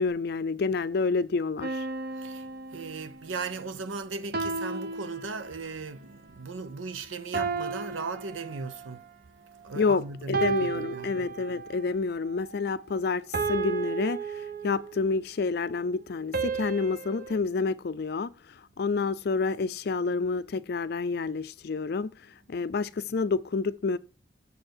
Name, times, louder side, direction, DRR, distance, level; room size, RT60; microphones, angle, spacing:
voice 1, 0.0-1.9 9.8-10.0 10.3-18.3 18.8-22.1 22.5-24.0, left 4 dB, 55° left, 0.4 m, -28 dB
sound 1, 1.6-3.3 4.3-5.8 7.3-9.0 10.3-11.8 13.3-15.1 16.3-17.4, right 5 dB, 50° right, 0.8 m, -33 dB
voice 2, 2.1-11.1 14.6-14.7 18.8-18.9, right 4 dB, 85° right, 0.8 m, -38 dB
6.8 x 4.4 x 6.5 m
head